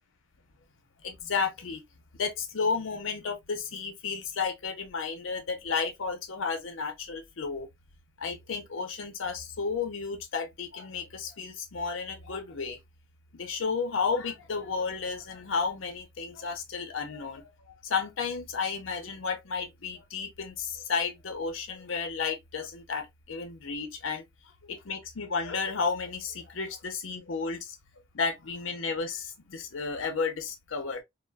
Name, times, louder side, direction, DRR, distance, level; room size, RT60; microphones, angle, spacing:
voice 1, 1.0-1.8 2.2-7.7 8.2-12.8 13.3-17.4 17.8-24.2 24.6-27.8 28.1-31.0, left 5 dB, 90° left, 0.7 m, -32 dB
3.0 x 2.1 x 2.2 m
head